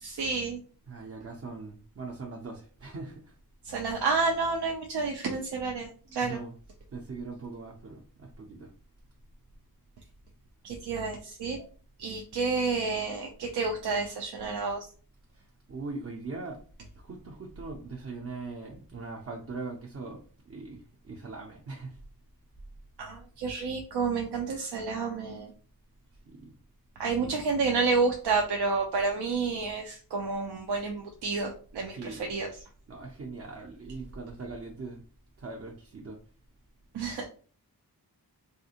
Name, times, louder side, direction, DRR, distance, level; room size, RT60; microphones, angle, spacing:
voice 1, 0.0-0.6 3.6-6.4 10.6-11.6 12.0-14.8 23.0-25.5 27.0-32.5 36.9-37.2, right 4 dB, 90° right, 1 dB, 0.6 m, -30 dB
voice 2, 0.9-3.3 6.1-6.5 6.9-8.7 15.4-16.6 16.9-22.0 26.3-26.5 27.2-27.6 31.9-32.3 32.9-35.0 35.4-36.2, right 3 dB, 40° right, -1 dB, 0.5 m, -41 dB
3.4 x 2.4 x 2.8 m, 0.41 s
wide cardioid pair, 125°, 38 cm